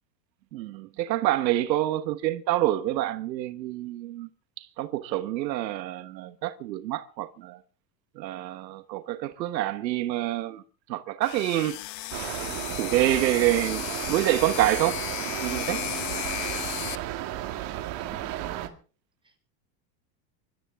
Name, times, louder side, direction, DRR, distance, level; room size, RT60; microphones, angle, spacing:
voice 1, 0.5-4.3 4.6-7.6 8.1-10.6 10.9-11.8 12.8-13.8 14.1-15.0 15.4-15.8, right 14 dB, 90° right, 1.3 m, -27 dB
sound 1, 11.2-17.0, left 16 dB, 80° left, 1.1 m, -35 dB
sound 2, 12.1-18.7, right 13 dB, 55° right, 2.3 m, -34 dB
voice 2, 17.7-18.8 19.2-19.4, right 2 dB, 10° right, 4.5 m, -50 dB
25.0 x 13.5 x 3.6 m
supercardioid pair, 120°, 50 cm